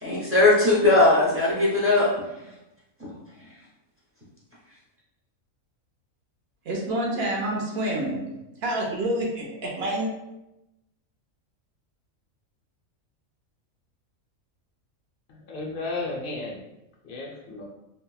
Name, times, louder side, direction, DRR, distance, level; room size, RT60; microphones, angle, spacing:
voice 1, 0.0-2.1, left 2 dB, 20° right, -7 dB, 0.4 m, -19 dB
voice 2, 6.6-8.3 8.6-10.1, right 1 dB, 55° right, -2 dB, 0.8 m, -28 dB
voice 3, 15.3-16.6 17.0-17.6, left 2 dB, 60° left, -1 dB, 0.5 m, -33 dB
3.5 x 2.1 x 2.3 m, 0.93 s
omnidirectional pair, 1.4 m